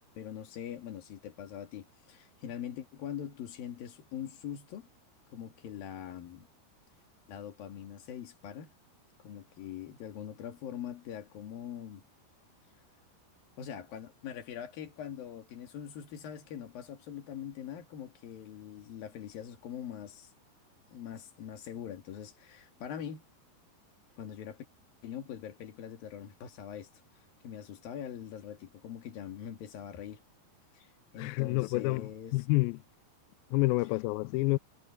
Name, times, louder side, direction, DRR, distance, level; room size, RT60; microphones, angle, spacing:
voice 1, 0.2-4.9 5.3-6.5 7.3-8.7 9.2-12.0 13.6-20.3 20.9-23.2 24.2-24.6 25.0-26.9 27.4-30.2 30.7-32.3, left 9 dB, 65° left, 3.7 m, -43 dB
voice 2, 31.2-32.8 33.5-34.6, left 22 dB, 85° left, 2.1 m, -28 dB
omnidirectional pair, 4.7 m